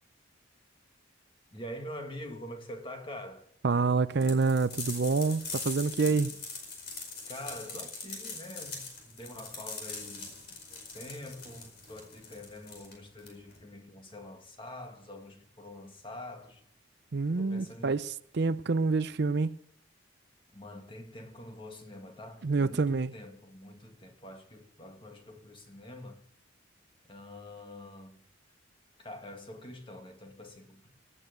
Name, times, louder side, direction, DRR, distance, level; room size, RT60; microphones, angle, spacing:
voice 1, 1.5-3.4 6.0-6.4 7.3-16.6 17.4-18.0 20.5-26.2 27.1-28.2 29.0-30.9, left 1 dB, 25° left, 1.9 m, -45 dB
voice 2, 3.6-6.3 17.1-19.6 22.4-23.1, right 4 dB, 55° right, 0.5 m, -27 dB
sound 1, 4.2-13.6, left 4 dB, 50° left, 4.9 m, -42 dB
18.0 x 9.3 x 7.9 m
head